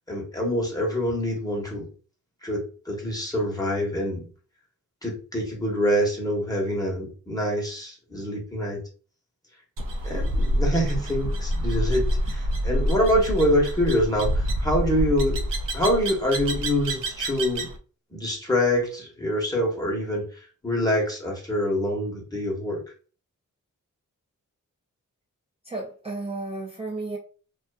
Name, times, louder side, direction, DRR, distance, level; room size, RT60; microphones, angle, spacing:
voice 1, 0.1-1.9 2.4-4.2 5.0-8.8 10.0-15.4 15.7-17.7 18.1-22.8, equal, 10° left, -1 dB, 1.0 m, -25 dB
sound 1, 9.8-17.8, equal, 80° right, 0.5 m, -27 dB
voice 2, 25.6-27.2, right 2 dB, 20° right, -3 dB, 0.6 m, -33 dB
2.4 x 2.4 x 2.3 m, 0.38 s
cardioid pair, 60°, 32 cm